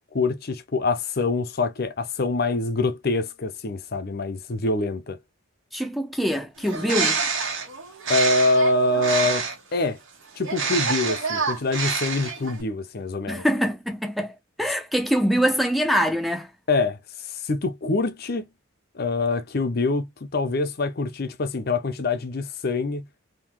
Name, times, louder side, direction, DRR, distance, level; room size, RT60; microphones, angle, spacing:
voice 1, 0.1-5.2 8.1-9.5 9.7-10.0 10.4-13.4 16.7-18.5 18.9-23.0, left 2 dB, 50° left, 0.6 m, -25 dB
voice 2, 5.7-7.2 13.3-16.5, equal, ahead, 0.5 m, -24 dB
Bird, 6.6-9.7 10.4-12.6, right 5 dB, 70° right, 1.4 m, -27 dB
3.7 x 2.8 x 2.9 m
head